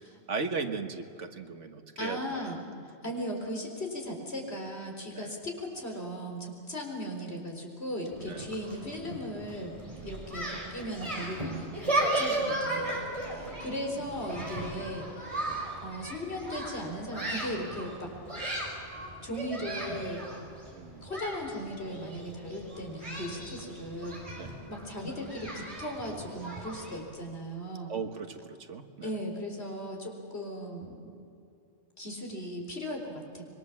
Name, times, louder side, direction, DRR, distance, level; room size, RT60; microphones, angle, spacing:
voice 1, 0.3-2.6 5.1-5.3 8.3-8.5 9.9-10.1 12.2-12.6 13.2-13.7 20.7-21.1 24.4-24.5 27.9-29.1, right 4 dB, 85° right, 6 dB, 1.8 m, -38 dB
voice 2, 2.0-2.6 2.8-9.7 10.0-15.1 15.8-18.1 19.2-20.3 21.0-27.9 29.0-31.2 32.0-33.4, equal, 60° left, 1 dB, 4.6 m, -37 dB
sound 1, 8.1-27.0, right 1 dB, 30° right, 4.8 m, -36 dB
26.0 x 23.0 x 7.4 m, 2.7 s
omnidirectional pair, 1.2 m